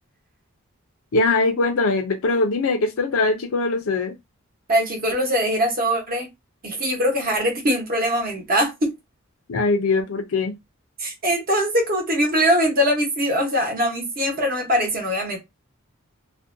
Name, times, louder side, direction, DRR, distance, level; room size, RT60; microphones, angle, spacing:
voice 1, 1.1-4.1 9.5-10.5, left 3 dB, 75° left, 0.5 m, -21 dB
voice 2, 4.7-6.3 6.6-8.9 11.0-15.4, equal, 40° right, 0.9 m, -22 dB
2.5 x 2.1 x 2.5 m
head